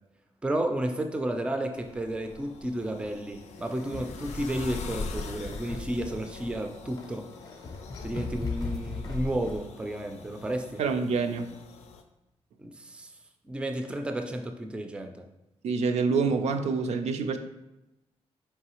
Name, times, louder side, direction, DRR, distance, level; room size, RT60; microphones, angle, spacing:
voice 1, 0.4-7.3 8.0-10.8 12.6-13.1 13.4-15.2, right 1 dB, 10° right, 5 dB, 0.3 m, -32 dB
sound 1, 1.7-12.0, left 4 dB, 90° left, 0.4 m, -44 dB
sound 2, 3.6-9.7, left 3 dB, 40° left, 0.5 m, -38 dB
voice 2, 10.8-11.5 15.6-17.4, right 4 dB, 80° right, 6 dB, 0.4 m, -26 dB
4.7 x 3.1 x 2.9 m, 0.95 s
wide cardioid pair, 150°, 11 cm